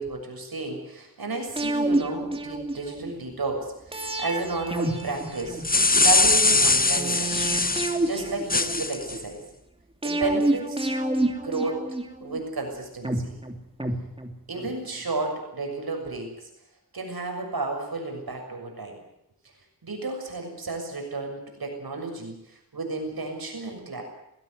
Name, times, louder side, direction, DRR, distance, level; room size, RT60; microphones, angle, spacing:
voice 1, 0.0-5.6 6.0-7.4 8.0-9.4 10.0-10.9 11.3-11.8 12.2-13.3 14.5-16.5 16.9-19.0 19.8-24.0, right 3 dB, 80° right, 3 dB, 6.8 m, -32 dB
sound 1, 1.6-3.1 3.9-6.0 7.0-9.2 10.0-12.4 13.0-14.7 15.0-15.1, right 1 dB, 15° right, 2.9 m, -29 dB
sound 2, 5.4-8.0 8.5-9.2, left 3 dB, 25° left, 1.0 m, -21 dB
21.5 x 16.5 x 9.6 m, 0.82 s
wide cardioid pair, 70°, 36 cm